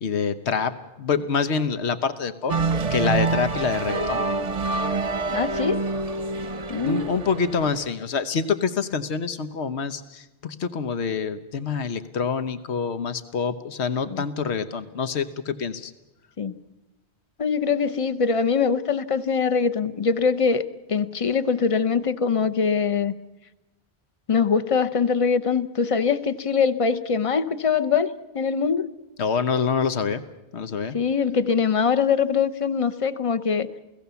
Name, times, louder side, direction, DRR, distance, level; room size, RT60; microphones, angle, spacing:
voice 1, 0.0-2.5 2.9-4.2 6.8-15.9 29.2-30.2 30.5-31.0, left 6 dB, 80° left, 11 dB, 1.3 m, -26 dB
sound 1, 2.5-7.9, right 3 dB, 35° right, 0.8 m, -26 dB
voice 2, 5.3-5.8 6.7-7.0 14.1-14.2 16.4-16.5 17.4-20.6 20.9-23.1 24.3-28.1 28.3-28.9 30.9-33.7, left 6 dB, 35° left, 11 dB, 0.8 m, -23 dB
29.0 x 17.0 x 7.0 m, 1.0 s
omnidirectional pair, 1.1 m